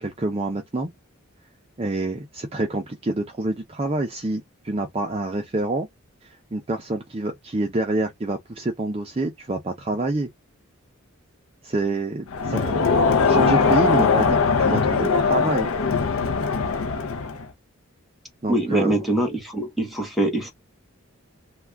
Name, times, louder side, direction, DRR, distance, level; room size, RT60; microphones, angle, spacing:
voice 1, 0.0-0.9 1.8-5.9 6.2-10.3 11.6-12.9 13.3-15.7 18.4-19.0, right 2 dB, 25° right, 0.5 m, -27 dB
Crowd, 12.3-17.5, left 5 dB, 70° left, 0.6 m, -21 dB
voice 2, 18.5-20.5, right 1 dB, ahead, 1.1 m, -23 dB
2.3 x 2.3 x 3.4 m
head